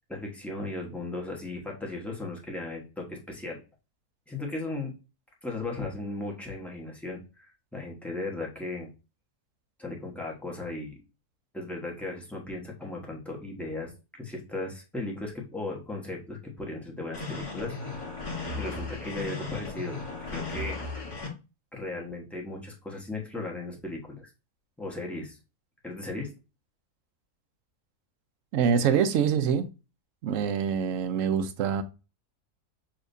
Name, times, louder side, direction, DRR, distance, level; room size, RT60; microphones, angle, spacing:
voice 1, 0.1-3.6 4.3-4.9 5.4-8.9 9.8-11.0 11.5-13.9 14.2-17.7 18.5-20.0 20.3-20.8 21.7-24.3 24.8-25.4 25.8-26.3, left 2 dB, ahead, 0.9 m, -36 dB
sound 1, 17.1-21.3, left 3 dB, 25° left, 1.1 m, -36 dB
voice 2, 28.5-29.7 30.2-31.8, right 7 dB, 65° right, 0.8 m, -25 dB
6.7 x 2.9 x 2.6 m
omnidirectional pair, 1.7 m